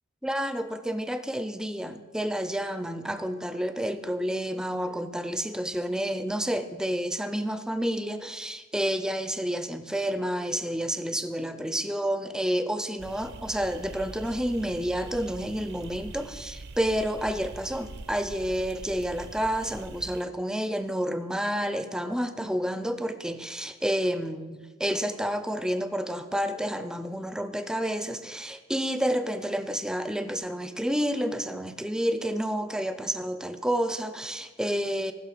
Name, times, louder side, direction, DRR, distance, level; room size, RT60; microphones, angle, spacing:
voice 1, 0.2-35.1, equal, 5° right, 10 dB, 0.4 m, -30 dB
sound 1, 13.0-20.2, right 3 dB, 55° right, 0.6 m, -43 dB
15.5 x 6.2 x 5.0 m, 1.4 s
head